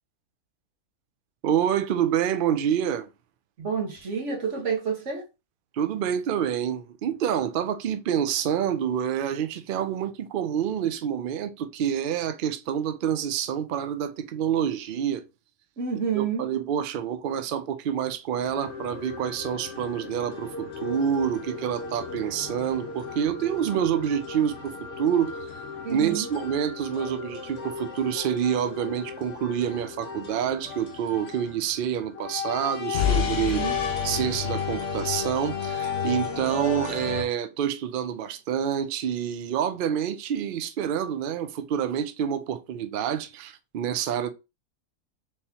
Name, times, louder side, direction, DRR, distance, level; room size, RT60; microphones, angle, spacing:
voice 1, 1.4-3.1 5.7-15.2 16.1-25.6 25.9-33.6 34.0-44.3, right 9 dB, 90° right, 0.4 m, -27 dB
voice 2, 3.6-5.3 15.8-16.5 25.8-26.3 33.4-33.8, right 6 dB, 55° right, 1.5 m, -29 dB
sound 1, 18.4-37.2, left 6 dB, 55° left, 0.9 m, -33 dB
4.2 x 3.7 x 2.8 m
omnidirectional pair, 1.5 m